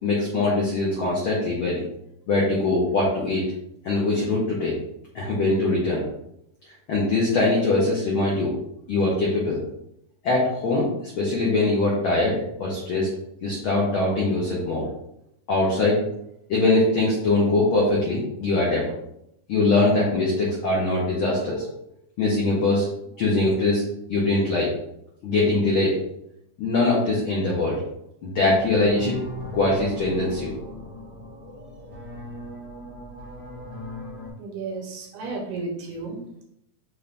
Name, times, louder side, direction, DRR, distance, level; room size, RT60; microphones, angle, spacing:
voice 1, 0.0-1.8 2.3-3.4 3.8-4.8 5.1-6.0 6.9-8.5 8.9-9.6 10.2-13.1 13.4-14.9 15.5-16.0 16.5-18.9 19.5-21.6 22.2-22.9 23.2-23.8 24.1-24.7 25.2-26.0 26.6-27.8 28.2-29.2 29.5-30.5 31.6-31.7, left 2 dB, 75° left, -4 dB, 1.2 m, -22 dB
sound 1, 28.4-34.3, left 1 dB, 40° left, 0.9 m, -38 dB
voice 2, 34.4-36.2, right 3 dB, 85° right, 0 dB, 2.3 m, -33 dB
5.4 x 2.6 x 3.4 m, 0.77 s
omnidirectional pair, 3.6 m